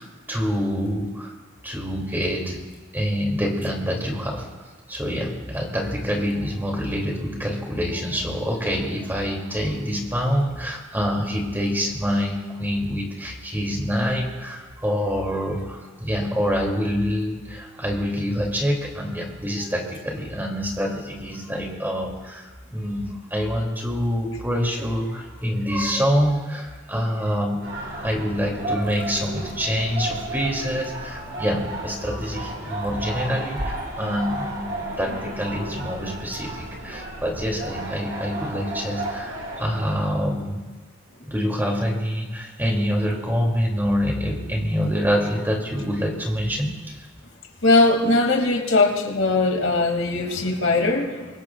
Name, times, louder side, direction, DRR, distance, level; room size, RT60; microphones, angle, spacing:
voice 1, 0.0-1.3 1.6-2.6 2.9-4.4 4.9-27.6 28.0-40.6 41.3-47.0, equal, 10° right, 0 dB, 2.8 m, -26 dB
sound 1, 27.6-40.1, right 1 dB, 80° right, 5.8 m, -33 dB
voice 2, 47.6-51.3, left 2 dB, 85° left, 2 dB, 2.6 m, -20 dB
25.0 x 21.0 x 2.5 m, 1.4 s
head